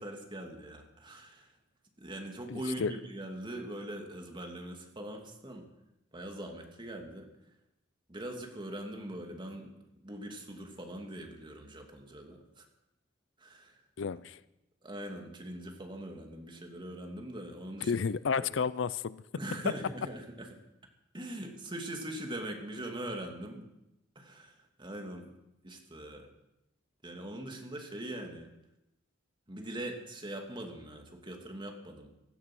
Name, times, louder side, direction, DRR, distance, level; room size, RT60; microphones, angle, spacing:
voice 1, 0.0-1.5 2.0-5.7 6.1-7.3 8.1-12.6 13.4-13.8 14.8-18.0 18.4-18.6 19.4-20.5 21.1-23.7 24.1-25.3 25.6-26.3 27.0-28.5 29.5-32.1, right 1 dB, 25° right, 3 dB, 2.7 m, -42 dB
voice 2, 2.5-2.9 14.0-14.4 17.8-19.2, left 5 dB, 70° left, 18 dB, 0.5 m, -32 dB
16.5 x 14.0 x 6.2 m, 0.91 s
head